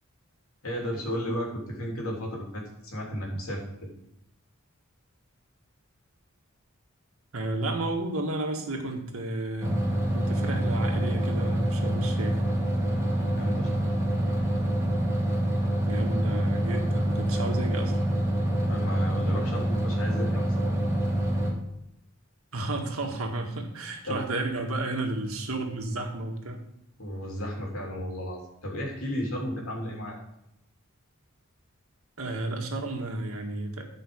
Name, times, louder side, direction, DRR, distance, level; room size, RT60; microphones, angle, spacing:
voice 1, 0.6-3.9 12.9-13.8 18.7-20.7 24.1-24.2 27.0-30.2, equal, 80° left, -1 dB, 3.1 m, -34 dB
voice 2, 7.3-9.8 10.1-12.4 15.9-17.9 22.5-26.6 32.2-33.8, right 2 dB, 80° right, 3 dB, 1.9 m, -32 dB
sound 1, 9.6-21.5, right 1 dB, 15° right, 2.3 m, -26 dB
11.5 x 5.7 x 5.2 m, 0.82 s
head